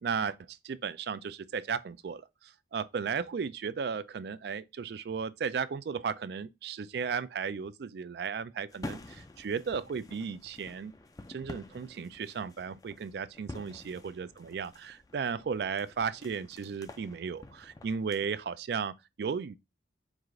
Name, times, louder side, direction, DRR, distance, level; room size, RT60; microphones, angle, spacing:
voice 1, 0.0-10.9 11.3-19.6, right 6 dB, 60° right, 0.3 m, -35 dB
sound 1, 8.7-18.3, left 2 dB, 20° left, 0.3 m, -48 dB
4.7 x 2.4 x 3.7 m
head